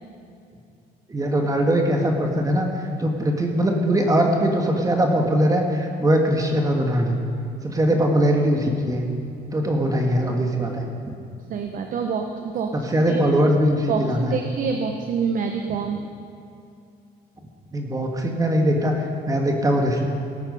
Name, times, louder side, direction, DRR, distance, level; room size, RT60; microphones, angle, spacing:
voice 1, 1.1-2.7 3.0-7.2 7.6-9.1 9.5-10.9 12.7-14.4 17.7-20.0, equal, 20° right, 2 dB, 1.5 m, -21 dB
voice 2, 11.5-13.2 13.9-16.1, right 6 dB, 55° right, 5 dB, 0.9 m, -27 dB
18.0 x 9.0 x 5.5 m, 2.5 s
cardioid pair, 110°, 17 cm